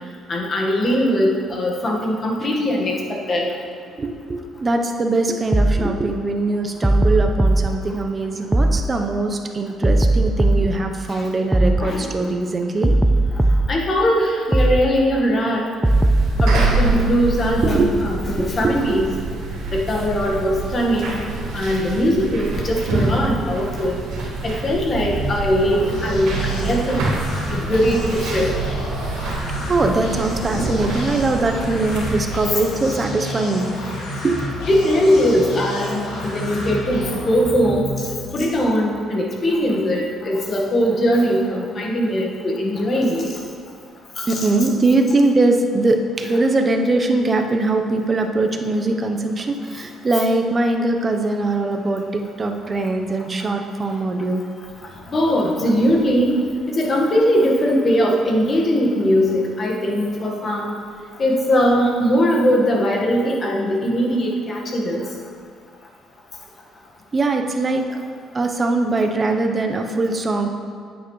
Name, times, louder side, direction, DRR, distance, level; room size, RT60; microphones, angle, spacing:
voice 1, 0.3-3.5 11.1-11.2 11.8-12.1 13.7-15.7 16.4-19.1 19.7-21.2 21.5-24.0 24.4-27.0 27.5-28.5 29.3-29.4 30.5-30.7 34.7-38.1 38.3-43.3 44.2-44.5 55.1-56.4 56.7-60.8 61.2-65.0, equal, 40° left, -1 dB, 1.6 m, -20 dB
voice 2, 4.0-12.9 17.6-18.1 18.4-19.1 29.7-33.7 34.2-34.5 43.4-43.5 44.3-54.4 67.1-67.8 68.3-70.5, right 2 dB, 30° right, 4 dB, 0.8 m, -21 dB
sound 1, 5.5-5.9 6.8-7.7 8.5-8.9 9.8-10.7 11.5-11.9 12.8-13.7 14.5-14.9 15.8-16.7, right 2 dB, 10° right, 0.3 m, -17 dB
sound 2, 15.8-32.4, right 3 dB, 90° right, 2.0 m, -26 dB
sound 3, 24.7-38.5, left 1 dB, 85° left, 2.2 m, -30 dB
9.4 x 8.4 x 3.2 m, 2.2 s
cardioid pair, 100°, 0 cm